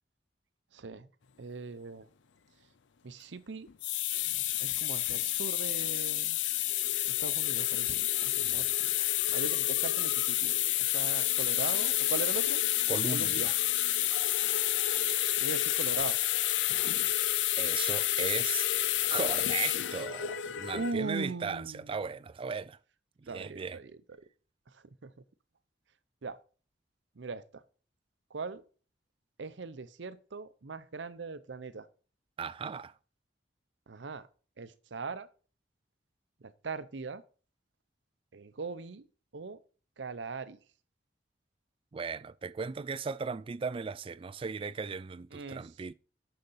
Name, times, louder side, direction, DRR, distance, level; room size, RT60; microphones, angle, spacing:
voice 1, 0.7-1.1 1.4-2.1 3.0-3.7 4.6-6.4 7.1-8.9 9.3-10.5 10.9-12.6 13.1-13.5 14.9-16.2 20.7-22.0 23.3-24.2 24.7-25.1 26.2-26.4 27.2-27.6 28.3-28.6 29.4-31.9 33.9-34.3 34.6-35.3 36.4-37.2 38.3-39.1 39.3-39.6 40.0-40.6 45.3-45.7, right 4 dB, 75° right, 0.7 m, -40 dB
sound 1, 3.7-20.9, left 14 dB, 85° left, 0.5 m, -29 dB
voice 2, 12.9-13.5 17.6-18.7 19.1-22.8 23.2-23.8 32.4-32.9 41.9-45.9, right 5 dB, 30° right, 0.3 m, -37 dB
6.6 x 6.6 x 5.6 m
head